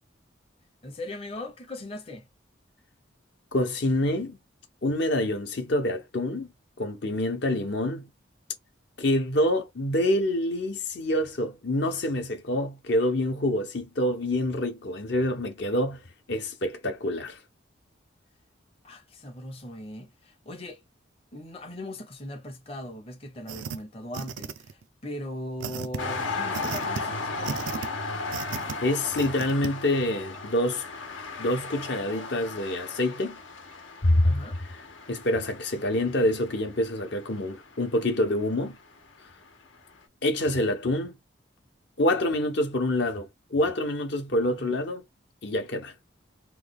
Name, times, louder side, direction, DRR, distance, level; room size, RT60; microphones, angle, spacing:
voice 1, 0.8-2.3 18.8-20.8 21.3-27.6 34.2-34.6 44.6-44.7, left 1 dB, 30° left, 0.7 m, -39 dB
voice 2, 3.5-4.4 4.8-6.5 6.8-8.1 9.0-16.0 16.3-17.4 28.8-30.8 31.4-33.4 34.0-34.3 35.1-38.8 40.2-41.1 42.0-45.0 45.4-45.9, left 1 dB, 60° left, 0.8 m, -26 dB
sound 1, 23.5-23.8 24.1-24.8 25.6-26.0 26.5-27.0 27.4-27.9 28.3-28.7 29.2-29.7, right 6 dB, 80° right, 0.4 m, -34 dB
sound 2, 26.0-38.8 39.5-39.6, left 3 dB, 85° left, 1.0 m, -36 dB
3.1 x 2.3 x 3.4 m
head